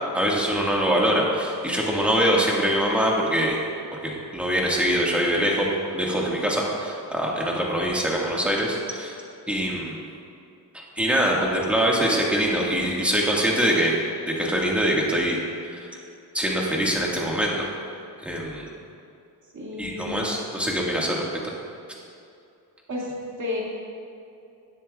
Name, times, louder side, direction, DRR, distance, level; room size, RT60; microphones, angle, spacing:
voice 1, 0.1-3.5 3.9-5.6 5.9-9.1 9.5-10.0 10.7-13.9 14.3-15.4 15.8-15.9 16.3-17.6 18.2-18.7 19.8-21.2, equal, 5° right, -3 dB, 1.7 m, -23 dB
voice 2, 19.5-20.2 22.9-23.1 23.4-23.6, left 2 dB, 40° right, -4 dB, 2.3 m, -31 dB
18.0 x 7.4 x 2.4 m, 2.5 s
cardioid pair, 115°, 43 cm